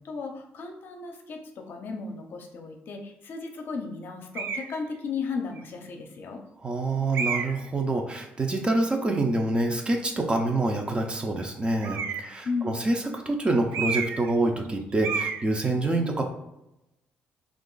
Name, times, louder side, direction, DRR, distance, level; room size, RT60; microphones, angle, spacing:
voice 1, 0.0-6.4 12.4-12.8, left 4 dB, 60° left, 3 dB, 0.6 m, -35 dB
sound 1, 4.3-4.7 5.6-5.7 7.1-7.7 11.8-12.4 13.7-14.3 14.6-14.7 15.0-15.4, right 6 dB, 80° right, 0.3 m, -30 dB
voice 2, 6.6-16.2, right 2 dB, 25° right, 3 dB, 0.6 m, -26 dB
3.0 x 2.4 x 3.8 m, 0.88 s
cardioid pair, 85°, 4 cm